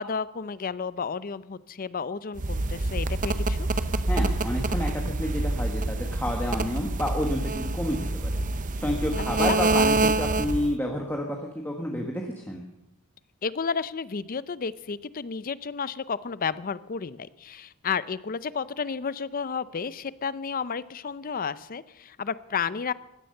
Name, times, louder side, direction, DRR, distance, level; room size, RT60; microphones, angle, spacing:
voice 1, 0.0-3.7 9.5-9.6 13.4-22.9, left 5 dB, 40° left, 17 dB, 0.5 m, -32 dB
sound 1, 2.4-10.7, right 2 dB, 35° right, 0.7 m, -26 dB
voice 2, 4.0-8.4 8.8-12.6, left 1 dB, 10° left, 1 dB, 1.3 m, -30 dB
16.0 x 12.5 x 6.6 m, 0.91 s
head